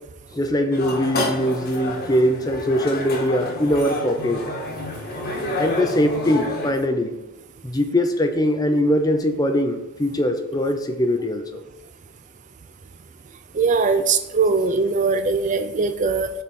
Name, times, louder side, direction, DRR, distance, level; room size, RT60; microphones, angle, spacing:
voice 1, 0.3-4.4 5.6-7.1 7.6-11.4, left 1 dB, 15° left, 6 dB, 0.6 m, -21 dB
sound 1, 0.7-6.7, left 1 dB, 45° left, 1.3 m, -29 dB
voice 2, 13.5-16.3, right 4 dB, 35° right, 9 dB, 0.4 m, -20 dB
7.1 x 4.0 x 6.3 m, 0.93 s
head